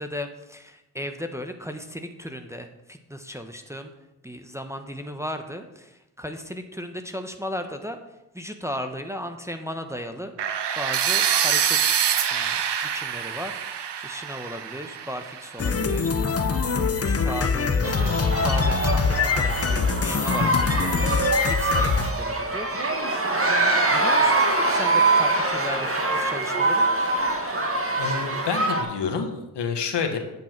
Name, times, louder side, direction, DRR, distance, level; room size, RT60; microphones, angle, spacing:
voice 1, 0.0-3.9 4.2-8.0 8.3-10.3 10.7-12.0 12.3-21.1 21.5-23.1 23.9-26.8, equal, 5° right, 6 dB, 1.0 m, -36 dB
sound 1, 10.4-16.3, right 8 dB, 60° right, 1.0 m, -26 dB
sound 2, 15.6-22.1, left 5 dB, 30° left, 0.9 m, -23 dB
sound 3, 17.8-28.8, right 2 dB, 30° right, 1.9 m, -24 dB
voice 2, 28.0-30.2, left 6 dB, 60° left, 5 dB, 1.5 m, -28 dB
8.1 x 7.5 x 4.5 m, 0.94 s
supercardioid pair, 45°, 46 cm